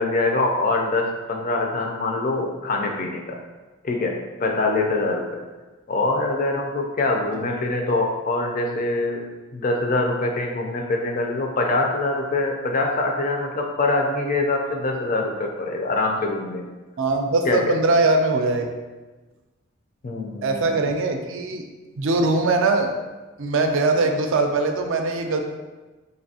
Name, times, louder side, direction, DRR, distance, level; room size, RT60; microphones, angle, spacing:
voice 1, 0.0-3.4 3.8-5.4 5.9-9.2 9.5-16.8 17.4-17.6 20.0-20.6, left 2 dB, 40° left, 1 dB, 0.4 m, -24 dB
voice 2, 17.0-18.7 20.4-21.6 22.0-22.9 23.4-25.4, right 3 dB, 60° right, 4 dB, 0.4 m, -21 dB
4.2 x 2.6 x 2.7 m, 1.2 s
head